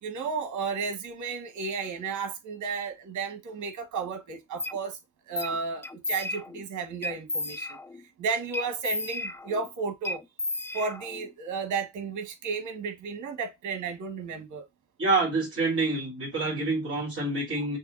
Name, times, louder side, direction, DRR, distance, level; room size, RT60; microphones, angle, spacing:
voice 1, 0.0-5.0 5.3-7.8 8.2-10.2 10.7-14.6, right 5 dB, 75° right, 1.6 m, -33 dB
sound 1, 4.6-4.8 5.4-5.6 5.8-6.6 7.0-8.0 8.5-9.7 10.1-11.3, left 2 dB, 10° left, 0.3 m, -33 dB
voice 2, 15.0-17.8, right 3 dB, 45° right, 3.2 m, -27 dB
6.5 x 2.7 x 2.6 m
cardioid pair, 90°, 30 cm